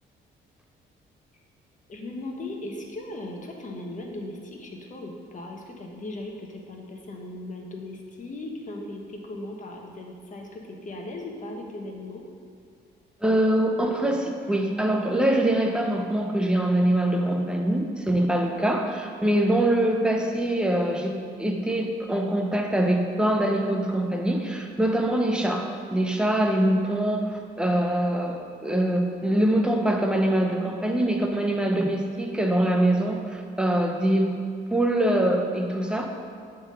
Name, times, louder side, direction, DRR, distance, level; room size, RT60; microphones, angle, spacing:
voice 1, 1.9-12.2, left 2 dB, 40° left, 1 dB, 1.2 m, -38 dB
voice 2, 13.2-34.4 34.7-36.1, right 1 dB, 5° right, 2 dB, 0.8 m, -24 dB
7.9 x 3.9 x 5.6 m, 2.2 s
cardioid pair, 90°, 20 cm